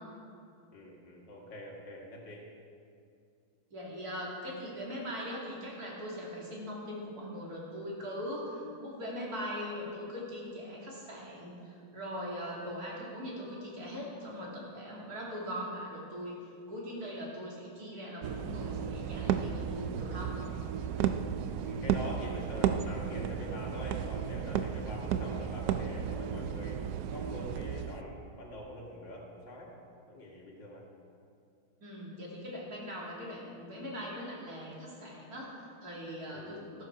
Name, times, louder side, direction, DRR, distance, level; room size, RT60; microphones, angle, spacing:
voice 1, 0.7-2.4 21.6-26.8 27.1-29.7 30.1-30.8 36.3-36.7, equal, 60° left, -2 dB, 2.7 m, -44 dB
voice 2, 3.7-16.4 16.7-20.3 31.8-36.8, equal, 45° right, -4 dB, 3.3 m, -41 dB
sound 1, 18.2-28.0, right 8 dB, 80° right, 0.9 m, -34 dB
13.5 x 12.5 x 4.7 m, 2.4 s
omnidirectional pair, 2.3 m